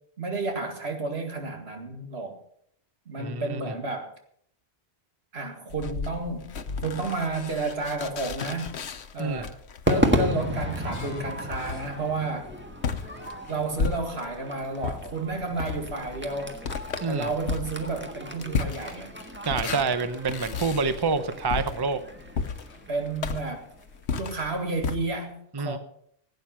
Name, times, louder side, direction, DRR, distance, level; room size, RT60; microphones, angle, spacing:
voice 1, 0.2-2.4 3.1-4.1 5.3-6.5 6.8-8.8 9.1-9.6 9.9-12.5 13.5-16.6 17.1-19.2 19.5-19.7 22.9-23.7 24.1-25.8, right 3 dB, 75° right, 4 dB, 2.3 m, -31 dB
voice 2, 3.2-3.7 9.2-9.5 17.0-17.3 19.4-22.0 25.5-25.8, right 4 dB, 25° right, 11 dB, 0.7 m, -27 dB
sound 1, 5.7-14.4 14.8-25.0, left 5 dB, 85° left, 1.2 m, -34 dB
Crowd / Fireworks, 9.9-24.3, equal, 10° right, 1.5 m, -33 dB
16.5 x 9.2 x 5.7 m, 0.65 s
omnidirectional pair, 1.1 m